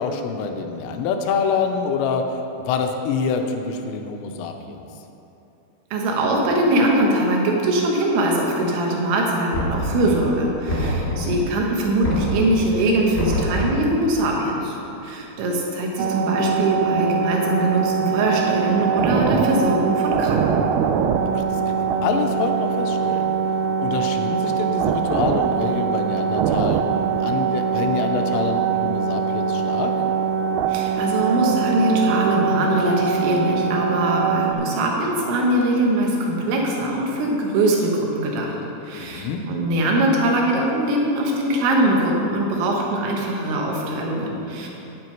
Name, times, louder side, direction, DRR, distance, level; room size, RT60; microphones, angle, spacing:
voice 1, 0.0-4.8 11.0-11.4 21.3-23.3 23.8-29.9 38.9-39.4, left 5 dB, 85° left, 5 dB, 3.2 m, -26 dB
voice 2, 5.9-14.8 15.0-20.6 30.7-38.5 38.8-44.7, right 1 dB, 70° right, -1 dB, 3.4 m, -22 dB
Knock, 9.5-10.2 10.7-11.5 12.0-12.6 13.1-13.9, equal, 30° left, 1.4 m, -25 dB
sound 1, 16.0-34.6, right 7 dB, 85° right, 3.3 m, -22 dB
10.5 x 9.2 x 4.6 m, 2.9 s
omnidirectional pair, 5.9 m